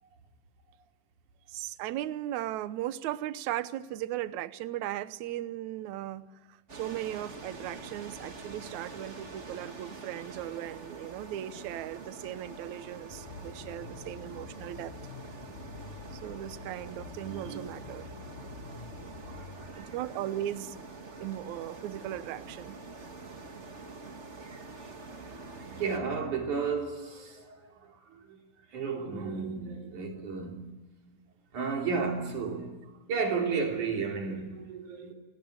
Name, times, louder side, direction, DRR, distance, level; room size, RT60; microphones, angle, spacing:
voice 1, 1.5-14.9 16.1-18.1 19.8-20.8 21.2-22.8, right 13 dB, 70° right, 1.8 m, -37 dB
sound 1, 6.7-26.0, right 3 dB, 30° right, 1.2 m, -46 dB
sound 2, 13.1-19.7, left 5 dB, 60° left, 2.4 m, -47 dB
voice 2, 19.2-19.9 24.4-24.6 24.9-28.4 28.7-30.8 31.5-35.1, right 5 dB, 50° right, 4.7 m, -34 dB
29.5 x 19.0 x 9.4 m
omnidirectional pair, 4.5 m